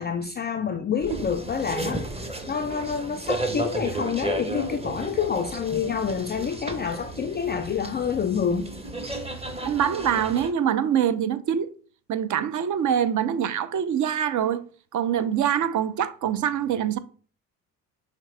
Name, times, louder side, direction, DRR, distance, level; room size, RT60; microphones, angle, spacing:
voice 1, 0.0-2.1 2.5-8.7, left 7 dB, 25° left, 0.4 m, -27 dB
sound 1, 1.0-10.5, right 2 dB, 15° right, 0.8 m, -33 dB
voice 2, 9.6-11.7 12.1-14.6 14.9-17.0, right 9 dB, 40° right, 0.6 m, -24 dB
5.7 x 2.9 x 3.2 m
hypercardioid pair, 55°, 45 cm